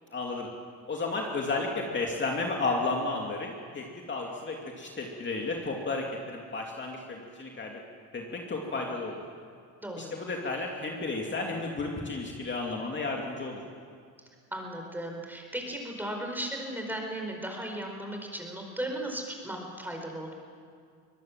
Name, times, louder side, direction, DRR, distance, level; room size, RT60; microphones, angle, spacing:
voice 1, 0.1-0.5 0.9-7.8 8.1-9.2 10.0-13.6, left 3 dB, 35° left, 0 dB, 2.7 m, -33 dB
voice 2, 9.8-10.2 14.5-20.3, right 1 dB, 5° right, 2 dB, 4.8 m, -36 dB
23.5 x 19.5 x 7.5 m, 2.2 s
cardioid pair, 110°, 34 cm